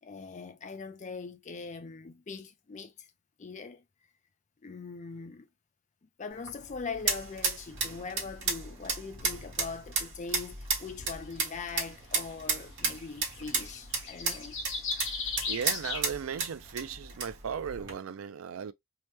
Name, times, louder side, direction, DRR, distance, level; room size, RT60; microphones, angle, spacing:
voice 1, 0.0-3.1 3.4-3.8 4.6-5.5 6.0-14.6, left 4 dB, 35° left, 0.4 m, -41 dB
sound 1, 6.3-17.9, right 4 dB, 55° right, 1.3 m, -34 dB
sound 2, 11.3-11.4 12.5-12.6 12.8-16.0, left 4 dB, 60° left, 1.0 m, -36 dB
voice 2, 15.5-18.7, right 7 dB, 75° right, 0.4 m, -36 dB
2.9 x 2.1 x 3.1 m
head